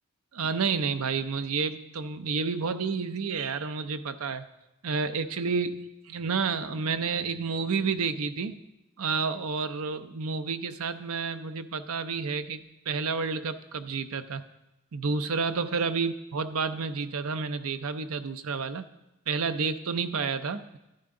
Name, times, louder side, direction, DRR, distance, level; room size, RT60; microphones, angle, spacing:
voice 1, 0.3-4.5 4.8-8.6 9.0-14.4 14.9-18.9 19.3-20.8, right 5 dB, 75° right, 10 dB, 0.7 m, -30 dB
13.0 x 10.5 x 3.8 m, 0.93 s
head